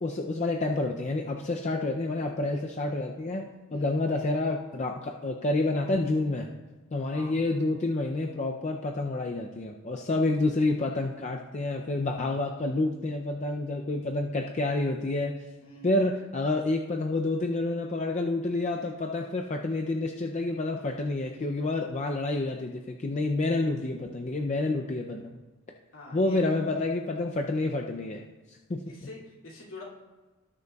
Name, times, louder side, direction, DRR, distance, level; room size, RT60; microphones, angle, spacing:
voice 1, 0.0-6.5 6.9-15.3 15.8-25.4 26.1-29.1, left 2 dB, 30° left, 2 dB, 0.4 m, -29 dB
voice 2, 15.6-15.9 25.9-26.8 28.9-29.8, left 2 dB, 65° left, -4 dB, 2.5 m, -46 dB
17.5 x 6.6 x 2.3 m, 1.2 s
head